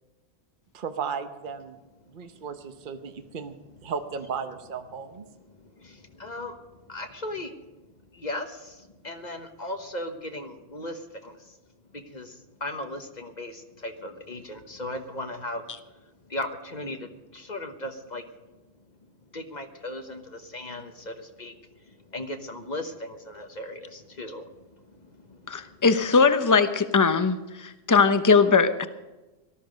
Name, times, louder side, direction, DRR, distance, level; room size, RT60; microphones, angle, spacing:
voice 1, 0.7-1.8 2.1-3.5 3.8-5.2, right 6 dB, 50° right, 8 dB, 1.0 m, -35 dB
voice 2, 5.3-7.6 8.1-11.6 11.9-15.9 16.3-18.2 19.3-25.8, left 1 dB, 40° left, 6 dB, 1.2 m, -38 dB
voice 3, 25.5-28.9, left 5 dB, 20° left, 10 dB, 0.7 m, -20 dB
18.5 x 13.0 x 5.2 m, 1.1 s
omnidirectional pair, 1.1 m